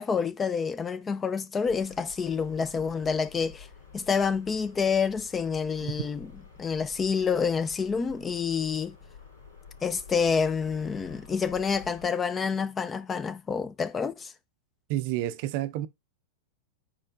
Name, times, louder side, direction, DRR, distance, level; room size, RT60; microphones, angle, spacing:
voice 1, 0.0-3.7 3.9-6.3 6.6-8.9 9.8-14.3, left 6 dB, 20° left, 0.4 m, -28 dB
sound 1, 1.6-12.1, left 5 dB, 85° left, 3.3 m, -50 dB
voice 2, 14.9-15.9, right 14 dB, 55° right, 0.4 m, -30 dB
4.4 x 4.4 x 2.5 m
hypercardioid pair, 110°, 0 cm